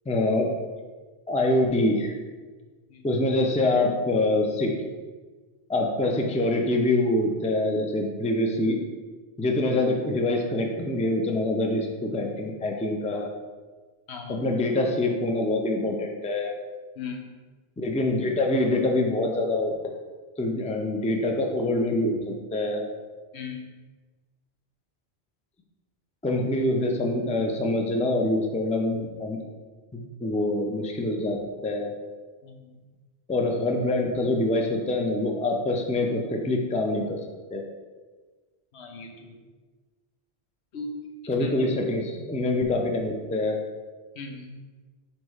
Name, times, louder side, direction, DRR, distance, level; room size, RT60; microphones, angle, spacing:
voice 1, 0.1-0.5 1.3-2.1 3.0-4.8 5.7-8.8 9.4-13.3 14.3-16.5 17.8-19.7 20.4-22.8 26.2-29.4 29.9-31.9 33.3-37.2 37.5-37.6 41.3-43.6, left 2 dB, 10° left, 1 dB, 0.4 m, -25 dB
voice 2, 14.1-14.4 17.0-17.3 23.3-23.6 32.4-32.6 38.7-39.3 40.7-41.0 41.4-41.7 44.1-44.6, left 4 dB, 85° left, 2 dB, 1.1 m, -38 dB
4.5 x 4.4 x 4.8 m, 1.4 s
omnidirectional pair, 1.1 m